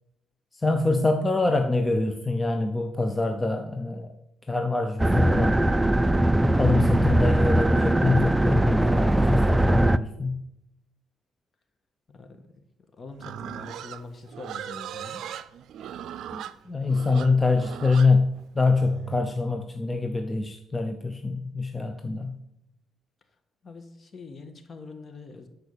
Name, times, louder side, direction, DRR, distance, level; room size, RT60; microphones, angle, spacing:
voice 1, 0.5-4.1 4.5-5.7 6.5-10.4 16.3-22.3, left 3 dB, 20° left, 5 dB, 0.8 m, -25 dB
sound 1, 5.0-10.0, right 1 dB, 10° right, 0.4 m, -20 dB
voice 2, 12.1-12.6 12.9-15.2 23.6-25.5, left 3 dB, 40° left, 7 dB, 1.5 m, -44 dB
Livestock farm animals working animals, 13.2-19.2, right 10 dB, 75° right, 0.5 m, -39 dB
11.0 x 4.9 x 6.8 m, 0.84 s
cardioid pair, 90°, 0 cm